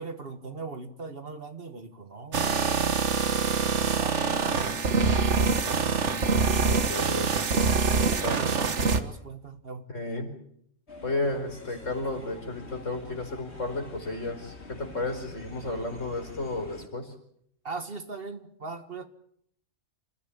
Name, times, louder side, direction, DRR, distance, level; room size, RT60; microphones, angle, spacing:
voice 1, 0.0-3.1 3.8-4.7 7.8-9.9 17.6-19.1, right 4 dB, 50° right, 1.9 m, -40 dB
sound 1, 2.3-9.0, right 4 dB, 70° right, 1.7 m, -25 dB
voice 2, 3.7-4.1 5.4-7.3 8.2-8.4 9.9-10.4 11.0-17.1, left 2 dB, 80° left, 5.2 m, -33 dB
sound 2, 10.9-16.9, left 2 dB, 60° left, 3.3 m, -46 dB
28.0 x 15.0 x 8.6 m
omnidirectional pair, 1.3 m